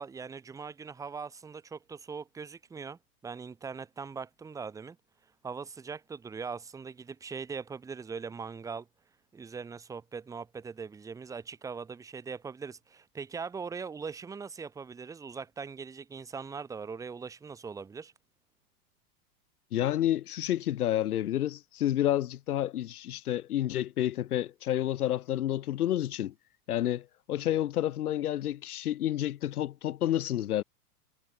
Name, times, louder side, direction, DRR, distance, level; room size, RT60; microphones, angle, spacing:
voice 1, 0.0-5.0 5.4-8.9 9.3-18.1, right 5 dB, 5° right, 3.4 m, -41 dB
voice 2, 19.7-26.3 26.7-30.6, left 12 dB, 70° left, 2.3 m, -29 dB
supercardioid pair, 180°, 46 cm